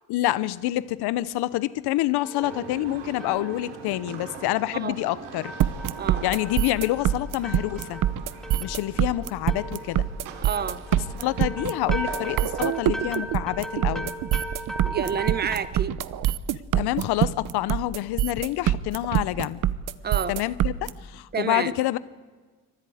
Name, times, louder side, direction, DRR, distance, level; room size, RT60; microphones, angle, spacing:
voice 1, 0.1-5.5 6.2-8.0 8.6-10.1 11.0-14.1 16.8-19.6 20.3-22.0, left 16 dB, 75° left, 17 dB, 0.9 m, -27 dB
sound 1, 2.2-15.6, right 1 dB, ahead, 2.3 m, -39 dB
sound 2, 2.4-12.7, right 6 dB, 80° right, 3.6 m, -42 dB
sound 3, 5.6-20.9, right 12 dB, 50° right, 0.9 m, -24 dB
voice 2, 10.4-10.8 14.8-15.9 20.0-20.4 21.3-21.7, right 7 dB, 25° right, 14 dB, 0.9 m, -29 dB
27.5 x 25.0 x 4.9 m, 1.4 s
cardioid pair, 160°, 40 cm